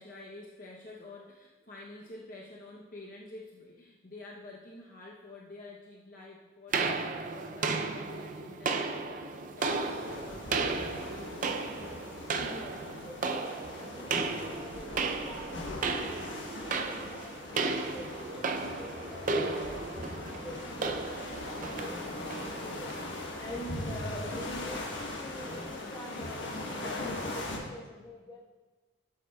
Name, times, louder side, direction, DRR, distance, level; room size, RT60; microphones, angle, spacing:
voice 1, 0.0-11.9 19.5-19.8, left 2 dB, 40° left, -3 dB, 0.8 m, -49 dB
sound 1, 6.7-23.1, right 4 dB, 40° right, 0.4 m, -34 dB
sound 2, 9.6-27.6, left 2 dB, 65° left, 1.2 m, -40 dB
voice 2, 12.4-13.2 13.8-19.7 20.0-23.0 23.4-28.5, equal, 20° left, -3 dB, 1.2 m, -46 dB
11.5 x 7.6 x 2.3 m, 1.3 s
head